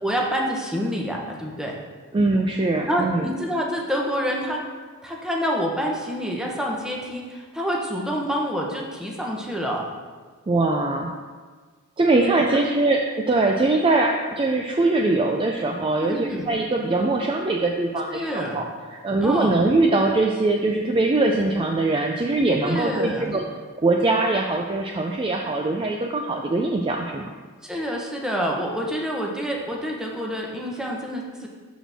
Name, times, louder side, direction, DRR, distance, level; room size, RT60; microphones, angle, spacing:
voice 1, 0.0-1.7 2.9-4.6 5.0-9.8 12.2-12.3 16.0-16.5 18.1-18.6 19.2-19.6 22.6-23.3 27.6-31.5, equal, 5° right, -2 dB, 1.0 m, -27 dB
voice 2, 2.1-3.3 10.5-11.1 12.0-18.6 19.0-23.5 23.8-27.3, right 2 dB, 25° right, 1 dB, 0.4 m, -22 dB
12.0 x 4.2 x 3.5 m, 1.5 s
head